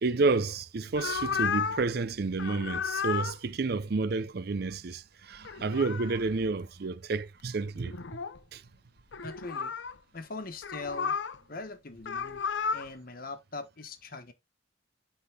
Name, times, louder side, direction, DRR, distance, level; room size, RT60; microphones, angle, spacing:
voice 1, 0.0-8.0 8.5-8.6, right 3 dB, 60° right, 0.5 m, -30 dB
sound 1, 1.0-1.9 2.3-3.4 5.3-6.2 7.2-7.3 7.7-8.4 9.1-9.9 10.6-11.4 12.0-12.9, left 6 dB, 90° left, 0.6 m, -33 dB
voice 2, 9.2-9.7 10.1-11.2 11.5-12.4 12.7-14.3, left 3 dB, 55° left, 1.3 m, -41 dB
9.6 x 3.7 x 3.4 m
head